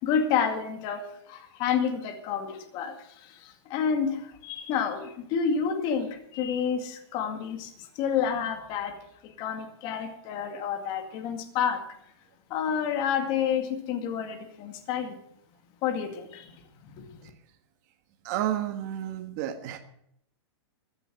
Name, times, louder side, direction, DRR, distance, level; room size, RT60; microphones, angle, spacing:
voice 1, 0.0-9.0 9.2-11.8 12.5-15.2 15.8-16.5 16.8-17.2, left 7 dB, 35° left, 2.1 m, -29 dB
voice 2, 18.2-19.8, right 11 dB, 40° right, 1.5 m, -31 dB
15.0 x 8.8 x 7.8 m
hypercardioid pair, 155°, 14 cm